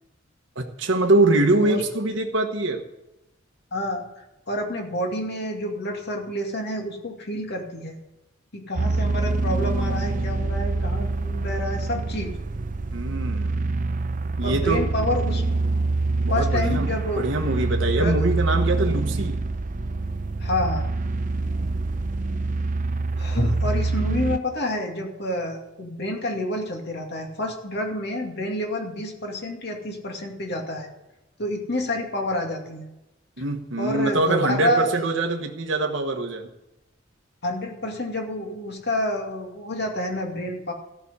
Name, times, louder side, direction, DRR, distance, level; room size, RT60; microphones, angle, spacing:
voice 1, 0.5-2.8 12.9-13.6 14.4-14.8 16.2-16.9 17.2-19.4 21.6-21.8 33.4-36.5, right 2 dB, 65° right, 3 dB, 1.2 m, -23 dB
voice 2, 3.7-8.0 8.5-12.3 14.4-15.6 16.3-17.4 18.0-18.2 20.4-20.9 23.2-30.9 31.4-32.9 33.4-33.5 33.8-34.9 37.4-40.7, left 1 dB, 55° left, 2 dB, 2.4 m, -28 dB
sound 1, 8.8-24.4, right 3 dB, 40° right, 0.6 m, -25 dB
14.5 x 6.2 x 8.3 m, 0.95 s
head